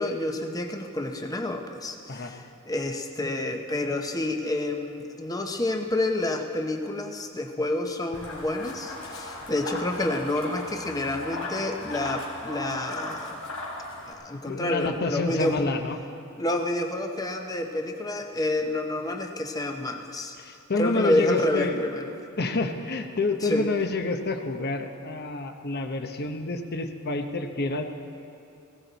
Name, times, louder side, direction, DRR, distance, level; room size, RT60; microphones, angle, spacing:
voice 1, 0.0-13.4 14.1-15.6 16.4-20.3 20.8-22.1 23.4-23.7, left 1 dB, 15° left, 4 dB, 0.8 m, -29 dB
Turkey Noise's, 8.1-14.1, left 2 dB, 80° left, 3.3 m, -37 dB
voice 2, 14.3-16.0 20.4-21.8 22.4-27.8, left 3 dB, 45° left, 6 dB, 0.9 m, -28 dB
19.0 x 16.5 x 4.0 m, 2.6 s
head